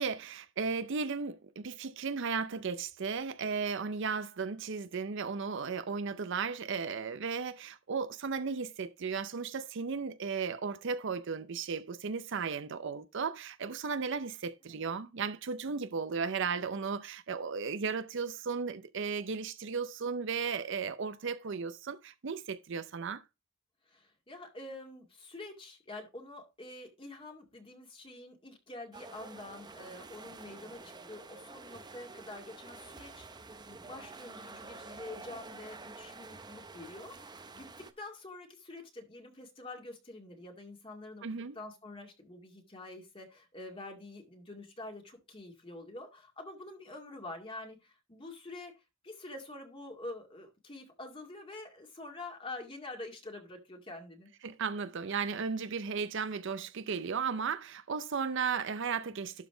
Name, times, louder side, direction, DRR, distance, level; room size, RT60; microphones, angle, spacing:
voice 1, 0.0-23.2 41.2-41.6 54.4-59.5, right 5 dB, 65° right, 0.6 m, -35 dB
voice 2, 23.9-41.3 41.5-48.7 49.0-54.3, left 2 dB, 25° left, 2.1 m, -47 dB
sound 1, 28.9-37.9, right 3 dB, 20° right, 0.6 m, -49 dB
12.0 x 4.1 x 3.8 m
head